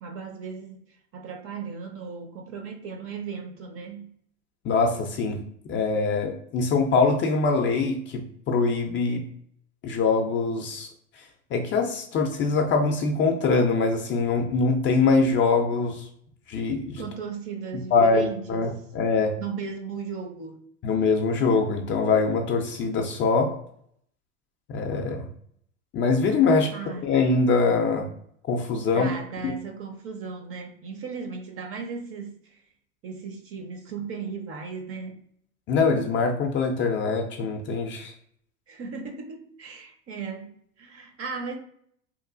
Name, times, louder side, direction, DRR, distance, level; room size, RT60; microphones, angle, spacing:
voice 1, 0.0-4.1 17.0-18.7 19.4-20.6 26.7-27.1 28.9-32.6 33.0-35.2 38.7-41.6, right 5 dB, 40° right, 0.6 m, -36 dB
voice 2, 4.6-5.4 5.7-8.2 8.5-9.2 9.8-10.9 11.5-16.1 16.5-17.0 17.9-19.3 20.8-23.5 24.7-25.3 25.9-26.7 27.0-28.1 28.5-29.1 29.4-29.5 35.7-38.1, left 4 dB, 35° left, 0.4 m, -23 dB
3.0 x 2.2 x 2.4 m
hypercardioid pair, 95°, 37 cm